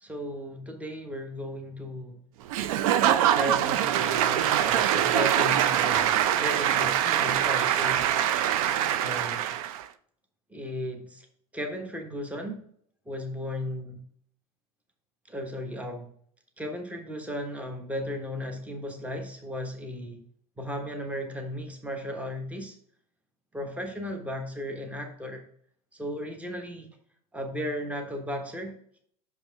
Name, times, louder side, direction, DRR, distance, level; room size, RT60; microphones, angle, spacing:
voice 1, 0.0-2.2 3.4-8.0 9.0-9.5 10.5-11.2 11.5-12.6 13.1-14.0 15.3-16.1 16.6-20.2 20.6-22.7 23.5-25.5 25.9-26.9 27.3-29.0, equal, 5° right, 4 dB, 1.2 m, -35 dB
Applause / Crowd, 2.5-9.8, right 11 dB, 65° right, 0.5 m, -24 dB
6.0 x 5.3 x 3.5 m, 0.63 s
hypercardioid pair, 80°, 19 cm